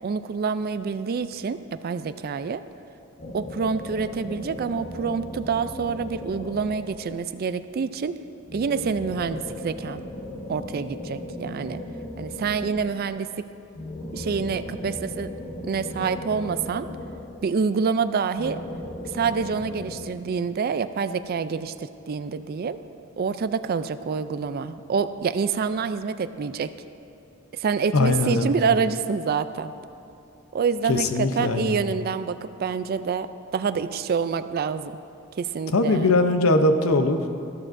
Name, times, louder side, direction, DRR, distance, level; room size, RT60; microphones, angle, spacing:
voice 1, 0.0-2.6 3.3-8.1 8.5-10.0 10.5-11.8 12.2-13.3 14.1-15.3 15.6-16.9 17.4-18.6 19.1-22.8 23.2-26.7 27.5-29.7 30.5-33.3 33.5-34.9 35.4-36.1, right 5 dB, 45° right, 12 dB, 0.3 m, -27 dB
sound 1, 3.2-7.4 8.5-13.1 13.7-17.8 18.4-20.0, left 1 dB, 40° left, 1.0 m, -37 dB
voice 2, 27.9-28.5 30.9-31.8 35.7-37.3, left 2 dB, 85° left, 7 dB, 0.7 m, -21 dB
14.0 x 13.5 x 2.6 m, 2.6 s
head